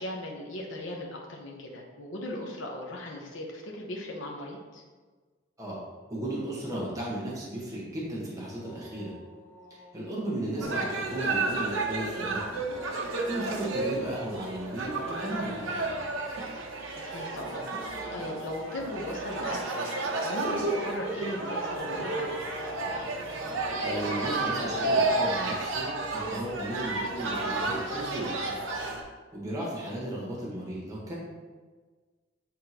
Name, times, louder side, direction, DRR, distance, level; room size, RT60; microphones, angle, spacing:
voice 1, 0.0-4.8 16.9-22.6, left 1 dB, 80° left, -1 dB, 0.9 m, -38 dB
voice 2, 6.1-9.1 9.7-12.6 13.2-16.0 23.8-28.6 29.3-31.2, right 1 dB, 20° right, -6 dB, 1.3 m, -35 dB
sound 1, 8.6-25.0, equal, 10° left, 0.4 m, -44 dB
sound 2, 10.6-29.0, right 2 dB, 80° right, 0.9 m, -31 dB
8.6 x 3.7 x 2.9 m, 1.4 s
head